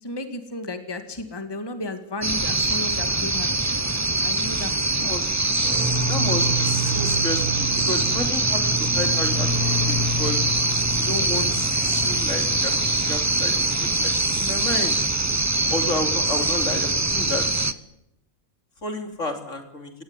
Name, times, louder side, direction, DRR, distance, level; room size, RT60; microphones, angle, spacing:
voice 1, 0.0-3.5 3.7-3.8 4.2-4.7 5.0-5.1, left 2 dB, 15° left, 7 dB, 2.1 m, -33 dB
sound 1, 2.2-17.7, right 2 dB, 15° right, 0.7 m, -23 dB
sound 2, 5.6-15.2, right 1 dB, 70° right, 7.0 m, -30 dB
voice 2, 6.0-10.4 11.0-12.7 13.1-15.0 15.7-17.5 18.8-19.9, left 2 dB, 55° left, 5 dB, 3.7 m, -31 dB
28.5 x 18.0 x 9.9 m, 0.85 s
omnidirectional pair, 1.5 m